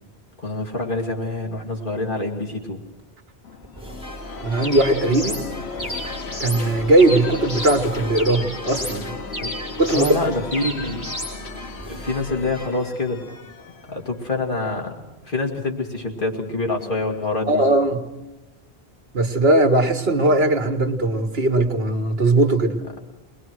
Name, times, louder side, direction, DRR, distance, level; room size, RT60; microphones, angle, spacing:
voice 1, 0.4-2.8 9.4-9.5 9.9-11.1 11.9-13.2 13.9-17.7, left 2 dB, 55° left, 0 dB, 2.5 m, -26 dB
sound 1, 3.0-3.1 3.6-12.7, right 1 dB, 5° right, 5.2 m, -39 dB
sound 2, 3.4-15.0, left 5 dB, 80° left, 1.3 m, -36 dB
voice 2, 4.4-5.4 6.4-9.1 9.8-10.1 17.5-18.0 19.1-22.8, right 2 dB, 75° right, 5 dB, 1.7 m, -19 dB
sound 3, 4.6-5.4 5.8-6.6 7.0-7.8 8.1-9.0 9.3-10.2 10.5-11.3, left 1 dB, 25° left, 4.7 m, -32 dB
22.0 x 21.0 x 6.2 m, 1.1 s
omnidirectional pair, 1.1 m